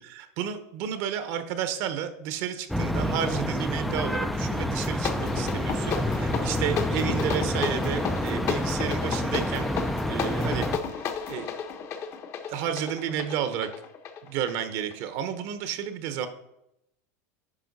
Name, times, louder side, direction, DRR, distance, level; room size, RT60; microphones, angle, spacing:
voice 1, 0.0-9.7 10.1-11.5 12.5-13.7 14.2-16.3, right 9 dB, 50° right, 10 dB, 1.0 m, -32 dB
sound 1, 2.7-10.8, left 1 dB, ahead, 0.4 m, -28 dB
sound 2, 4.7-15.0, left 6 dB, 35° left, 0.9 m, -33 dB
10.0 x 5.5 x 4.1 m, 0.82 s
supercardioid pair, 140°, 8 cm